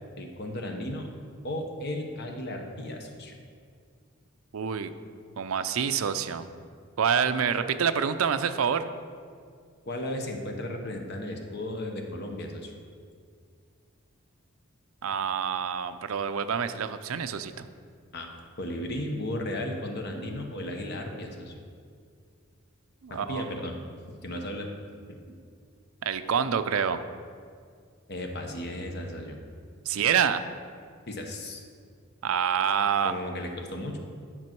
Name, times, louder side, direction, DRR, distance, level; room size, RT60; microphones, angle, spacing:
voice 1, 0.2-1.1 1.4-3.4 9.9-12.7 18.1-18.3 18.6-21.5 23.1-23.8 24.2-24.7 25.1-25.4 28.1-29.4 31.1-31.6 33.0-34.0, left 1 dB, 55° left, 3 dB, 1.0 m, -35 dB
voice 2, 4.5-4.9 5.4-6.5 7.0-8.9 15.0-17.7 23.0-23.4 26.0-27.0 29.9-30.4 32.2-33.2, right 7 dB, 85° right, 11 dB, 0.5 m, -27 dB
10.5 x 6.1 x 4.5 m, 2.1 s
head